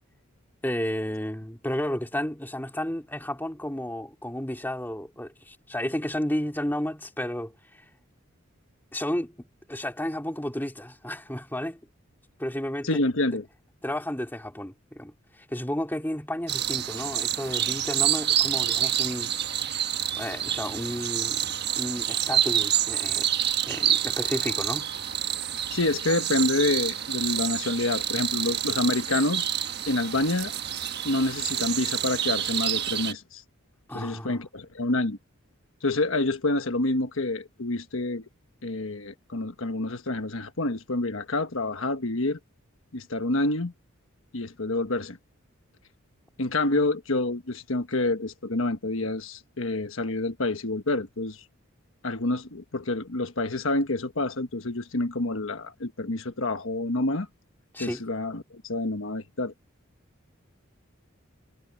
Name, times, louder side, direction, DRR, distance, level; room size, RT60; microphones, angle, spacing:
voice 1, 0.6-7.8 8.9-11.8 12.4-12.9 13.8-19.3 20.2-23.3 23.6-24.9 33.9-34.4 57.7-58.0, left 1 dB, 10° left, 2.9 m, -32 dB
voice 2, 12.8-13.5 25.7-29.5 29.9-30.5 31.0-33.4 33.9-35.2 35.8-38.2 38.6-42.4 42.9-43.7 44.3-45.2 46.4-51.4 52.0-57.3 57.8-59.5, left 2 dB, 75° left, 1.3 m, -28 dB
sound 1, 16.5-33.1, right 10 dB, 50° right, 1.3 m, -28 dB
head